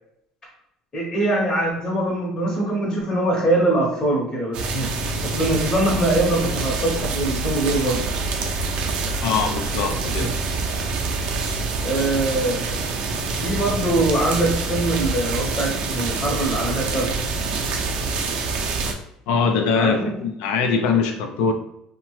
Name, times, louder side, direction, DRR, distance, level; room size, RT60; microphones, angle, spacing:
voice 1, 0.9-4.9 5.2-8.0 10.0-10.3 11.8-12.8 13.4-17.1 19.7-20.1, right 1 dB, 25° left, -4 dB, 0.8 m, -23 dB
sound 1, 4.5-18.9, right 3 dB, 55° right, 0.5 m, -26 dB
voice 2, 9.2-10.3 19.3-21.5, left 5 dB, 85° left, 6 dB, 0.4 m, -22 dB
2.8 x 2.1 x 3.0 m, 0.79 s
cardioid pair, 130°, 2 cm